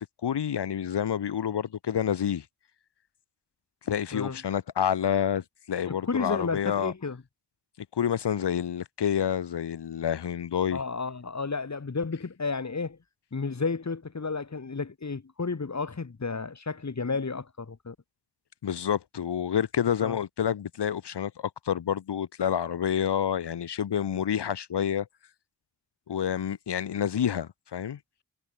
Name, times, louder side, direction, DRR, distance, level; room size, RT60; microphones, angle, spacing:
voice 1, 0.0-2.4 3.9-6.9 7.9-10.8 18.6-21.3 21.7-25.1 26.1-28.0, left 9 dB, 80° left, 2.0 m, -28 dB
voice 2, 4.1-4.4 5.9-7.2 10.7-13.0 13.3-17.9 20.0-20.2, left 4 dB, 40° left, 3.2 m, -32 dB
cardioid pair, 50°, 41 cm